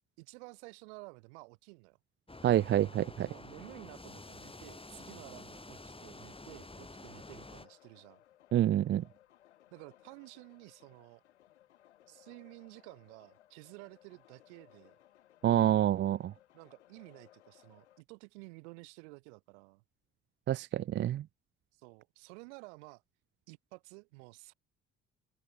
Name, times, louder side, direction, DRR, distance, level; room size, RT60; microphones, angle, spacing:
voice 1, 0.2-2.0 3.2-8.2 9.7-11.2 12.1-15.0 16.5-19.8 21.8-23.0 23.5-24.5, right 29 dB, 80° right, 1.6 m, -52 dB
sound 1, 2.3-7.7, left 2 dB, 15° left, 4.3 m, -49 dB
voice 2, 2.4-3.3 8.5-9.0 15.4-16.3 20.5-21.2, right 12 dB, 35° right, 0.4 m, -27 dB
sound 2, 6.0-18.0, left 13 dB, 90° left, 5.4 m, -63 dB
hypercardioid pair, 50°, 34 cm